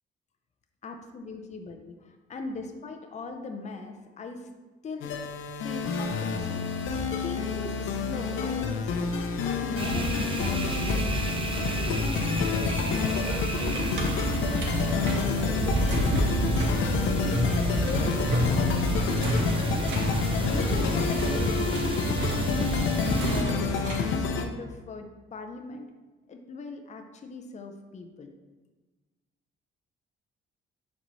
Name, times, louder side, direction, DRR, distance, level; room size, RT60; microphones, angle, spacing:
voice 1, 0.8-4.5 4.8-5.2 5.5-6.6 7.2-11.1 11.5-13.3 13.6-17.3 17.7-20.0 20.4-25.9 26.3-28.3, left 3 dB, 35° left, 4 dB, 0.6 m, -40 dB
sound 1, 5.0-24.5, left 5 dB, 75° left, 0.7 m, -29 dB
sound 2, 9.8-23.4, right 2 dB, 25° right, 0.7 m, -30 dB
sound 3, 13.7-24.2, equal, 65° right, 1.5 m, -32 dB
10.5 x 4.2 x 3.1 m, 1.3 s
cardioid pair, 90°, 20 cm